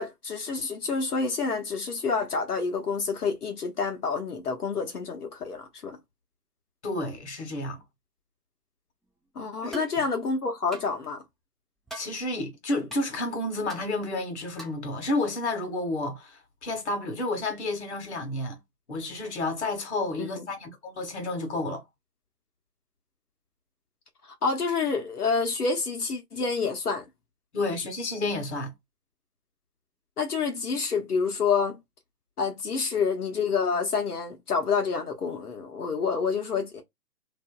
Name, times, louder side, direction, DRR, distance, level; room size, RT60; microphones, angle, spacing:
voice 1, 0.0-6.0 9.4-11.2 20.2-20.4 24.4-27.0 30.2-31.8 32.4-36.8, left 5 dB, 70° left, 0.9 m, -28 dB
voice 2, 6.8-7.8 9.6-9.9 11.9-18.6 18.9-21.8 27.5-28.7, left 2 dB, 45° left, 1.0 m, -31 dB
sound 1, 9.7-10.0 10.7-10.9 11.9-12.1 12.9-13.0 13.7-13.8 14.6-14.8, right 2 dB, ahead, 0.3 m, -40 dB
2.8 x 2.5 x 2.2 m
hypercardioid pair, 160°, 47 cm